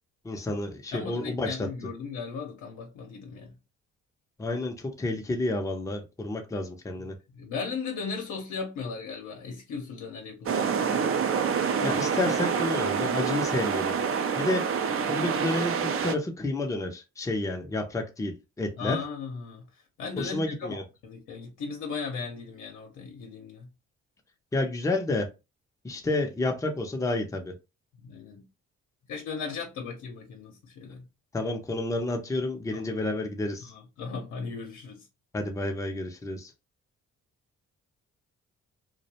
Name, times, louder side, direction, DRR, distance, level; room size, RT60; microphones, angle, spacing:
voice 1, 0.2-1.7 4.4-7.1 11.8-14.0 14.4-14.7 15.1-19.0 20.2-20.8 24.5-25.3 25.8-27.5 31.3-33.7 35.3-36.5, left 2 dB, 10° left, 0.5 m, -30 dB
voice 2, 0.9-3.5 7.3-11.0 18.8-19.7 20.0-23.7 28.0-28.5 29.1-31.1 32.7-32.9 33.6-35.0, left 5 dB, 75° left, 0.7 m, -37 dB
sound 1, 10.5-16.2, right 6 dB, 50° right, 0.4 m, -27 dB
2.4 x 2.1 x 2.8 m
cardioid pair, 90°, 30 cm